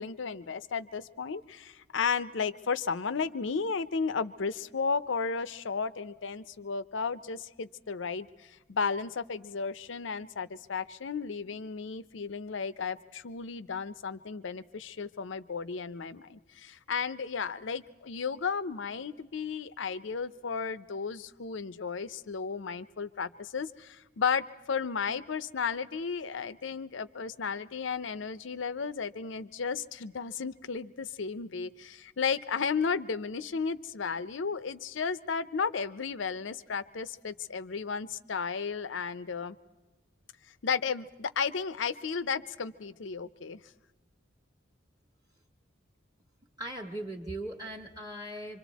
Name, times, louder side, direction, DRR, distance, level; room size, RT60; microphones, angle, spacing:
voice 1, 0.0-39.6 40.6-43.6, left 5 dB, 65° left, 15 dB, 0.6 m, -34 dB
voice 2, 46.6-48.6, right 1 dB, 20° right, 3 dB, 1.3 m, -39 dB
26.0 x 25.0 x 4.1 m, 1.2 s
head